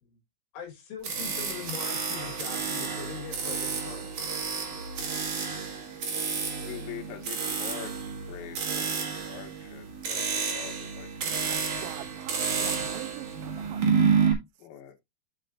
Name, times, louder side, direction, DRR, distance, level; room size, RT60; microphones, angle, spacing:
voice 1, 0.5-4.1, left 7 dB, 70° left, 4.7 m, -42 dB
sound 1, 1.0-14.3, right 6 dB, 50° right, 3.0 m, -30 dB
voice 2, 6.7-11.1 14.6-15.0, left 11 dB, 85° left, 4.3 m, -44 dB
voice 3, 11.2-14.3, right 16 dB, 85° right, 3.3 m, -44 dB
13.5 x 5.6 x 2.5 m
omnidirectional pair, 5.7 m